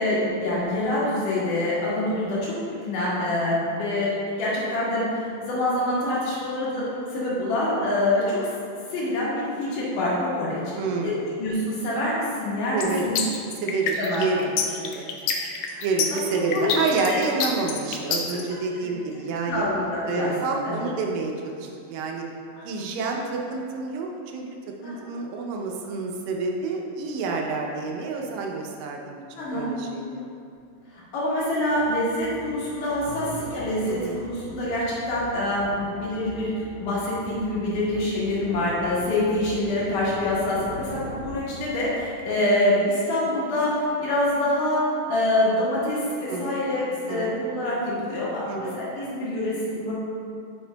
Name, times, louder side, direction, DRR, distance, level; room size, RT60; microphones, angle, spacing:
voice 1, 0.0-4.1 4.4-8.4 8.9-10.6 11.0-11.1 11.4-13.2 14.0-14.3 15.7-15.9 16.1-16.2 16.5-16.7 17.0-17.2 18.8-18.9 19.5-20.3 20.6-20.8 22.6-22.7 24.8-25.0 29.4-29.7 30.9-44.8 45.0-49.9, left 1 dB, 70° left, -7 dB, 2.9 m, -26 dB
voice 2, 10.8-11.2 12.7-13.1 13.6-15.1 15.8-19.6 20.1-22.2 22.6-24.4 24.8-30.2 33.9-34.2 46.3-46.6 47.1-47.3 48.5-48.8, right 4 dB, 90° right, 0 dB, 2.4 m, -28 dB
sound 1, 12.8-18.4, left 6 dB, 85° left, 1.6 m, -26 dB
sound 2, 30.6-30.7 31.6-42.2, right 1 dB, 70° right, 1.8 m, -41 dB
8.5 x 5.8 x 2.2 m, 2.5 s
omnidirectional pair, 3.9 m